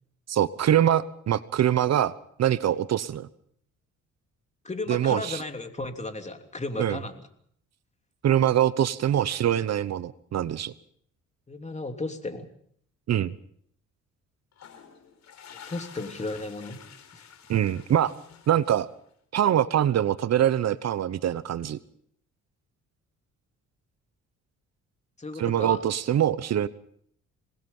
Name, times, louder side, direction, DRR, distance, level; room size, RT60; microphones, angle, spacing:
voice 1, 0.3-2.1 2.4-3.3 4.9-5.4 6.8-7.0 8.2-10.7 13.1-13.3 17.5-18.1 18.5-18.9 19.3-21.8 25.4-26.7, right 10 dB, 60° right, 16 dB, 1.0 m, -24 dB
voice 2, 4.6-7.2 11.5-12.5 15.7-16.8 17.1-17.3 25.2-25.8, left 2 dB, 25° left, 6 dB, 3.1 m, -34 dB
sound 1, 14.5-19.1, left 8 dB, 65° left, 4.9 m, -49 dB
26.5 x 20.0 x 5.5 m, 0.64 s
cardioid pair, 90°, 30 cm